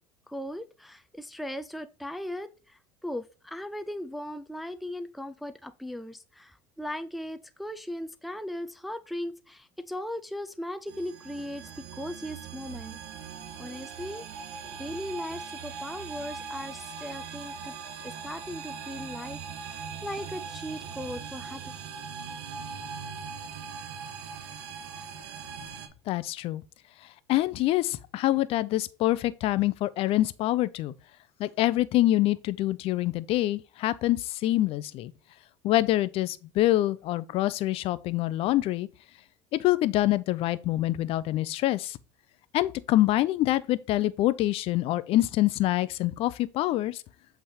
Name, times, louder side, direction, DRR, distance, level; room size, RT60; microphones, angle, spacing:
voice 1, 0.3-13.0 13.6-14.3 14.5-21.6, left 1 dB, ahead, 0.4 m, -38 dB
sound 1, 10.9-25.9, right 6 dB, 75° right, 1.4 m, -40 dB
sound 2, 11.3-13.4 14.0-19.0 19.3-20.0 20.3-21.8, right 9 dB, 30° right, 3.0 m, -55 dB
voice 2, 26.1-26.6 27.3-30.9 31.4-35.1 35.6-38.9 39.5-42.0 42.5-47.0, left 15 dB, 60° left, 0.6 m, -25 dB
7.7 x 3.5 x 4.3 m
supercardioid pair, 95°, 11 cm